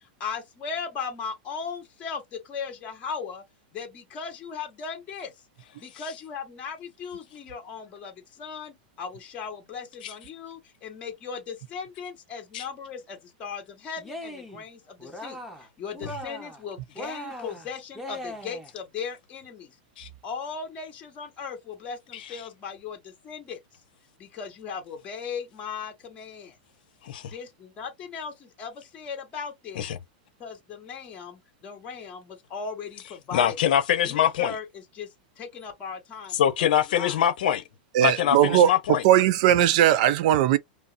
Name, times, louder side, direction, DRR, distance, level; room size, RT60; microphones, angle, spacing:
voice 1, 0.2-3.4 3.7-5.3 5.8-15.4 15.8-19.7 20.2-23.6 24.2-26.6 27.3-29.8 30.4-33.6 34.0-35.1 35.4-37.2, left 6 dB, 30° left, 1.6 m, -37 dB
Cheering, 14.0-14.6 15.0-15.7 15.9-16.6 16.9-18.7, equal, 5° right, 0.9 m, -39 dB
voice 2, 33.3-34.5 36.3-37.6 38.0-39.0, left 10 dB, 70° left, 0.8 m, -24 dB
voice 3, 37.9-38.7 39.0-40.6, right 11 dB, 55° right, 0.5 m, -19 dB
5.3 x 2.0 x 2.5 m
supercardioid pair, 145°, 5 cm